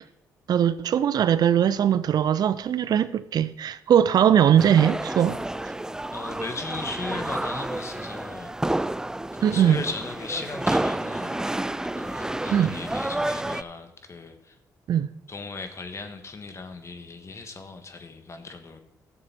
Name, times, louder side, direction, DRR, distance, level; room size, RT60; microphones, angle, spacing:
voice 1, 0.5-5.4 9.4-9.8 12.5-12.8 14.9-15.1, right 9 dB, 65° right, 0.5 m, -20 dB
sound 1, 4.6-13.6, right 1 dB, 10° right, 0.4 m, -30 dB
voice 2, 6.1-8.8 9.3-11.4 11.9-14.6 15.3-18.8, left 3 dB, 40° left, 1.5 m, -37 dB
14.0 x 6.7 x 4.4 m
cardioid pair, 70°, 7 cm